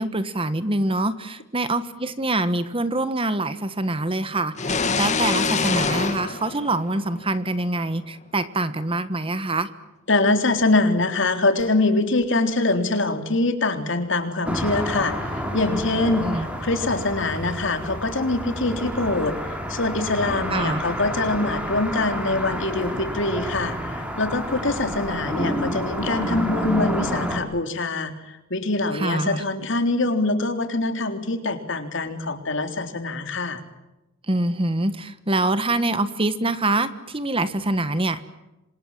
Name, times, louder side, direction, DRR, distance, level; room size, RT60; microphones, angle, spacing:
voice 1, 0.0-9.7 16.2-16.5 20.5-20.8 28.9-29.4 34.3-38.2, right 2 dB, 25° right, 13 dB, 1.4 m, -25 dB
sound 1, 4.6-7.4, left 4 dB, 35° left, 2.0 m, -25 dB
voice 2, 10.1-19.4 19.7-33.6, left 2 dB, 60° left, 7 dB, 3.6 m, -24 dB
sound 2, 14.5-27.4, equal, 5° right, 4.8 m, -29 dB
27.5 x 26.5 x 7.5 m, 0.98 s
head